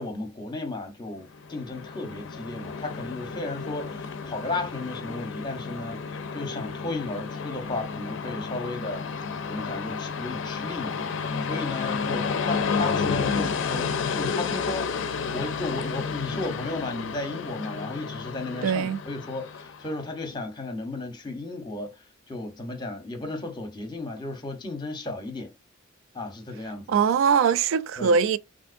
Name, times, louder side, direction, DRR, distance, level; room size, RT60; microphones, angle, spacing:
voice 1, 0.0-6.0 6.3-9.1 9.5-11.0 11.5-21.9 22.3-25.5 26.1-27.0 28.0-28.2, left 2 dB, 20° left, 0.7 m, -34 dB
Train, 1.3-20.0, left 5 dB, 60° left, 0.4 m, -31 dB
voice 2, 18.6-19.0 26.9-28.4, right 6 dB, 65° right, 0.3 m, -22 dB
3.4 x 2.7 x 2.5 m
head